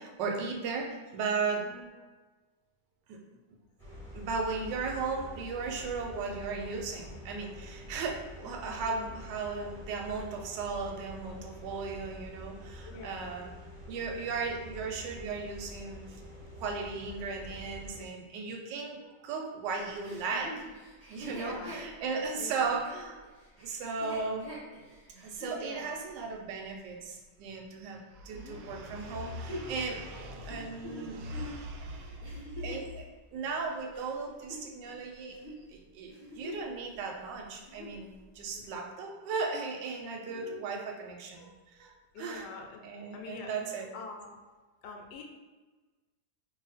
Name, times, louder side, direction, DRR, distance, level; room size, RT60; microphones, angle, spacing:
voice 1, 0.0-1.7 3.1-3.2 4.1-13.5 13.9-16.2 16.6-20.6 21.1-23.2 23.6-24.6 25.2-35.4 35.7-42.5 42.8-44.0, right 4 dB, 90° right, 2 dB, 1.3 m, -36 dB
voice 2, 1.6-1.9 8.4-8.5 12.8-13.4 21.3-21.8 22.4-22.8 24.2-24.5 25.4-26.0 28.3-28.7 38.5-38.7 40.3-40.5 42.1-42.8 43.1-43.5 43.9-44.4 44.8-45.2, left 4 dB, 80° left, 1 dB, 1.2 m, -45 dB
sound 1, 3.8-18.0, equal, 25° left, 1.0 m, -47 dB
Chuckle chortle, 20.0-25.6 26.2-26.3 29.0-32.9 33.5-35.0 35.3-35.6 36.0-36.8 37.1-37.2 37.5-38.0 38.7-38.8, equal, 20° right, 0.7 m, -45 dB
2.8 x 2.5 x 4.1 m, 1.3 s
omnidirectional pair, 1.9 m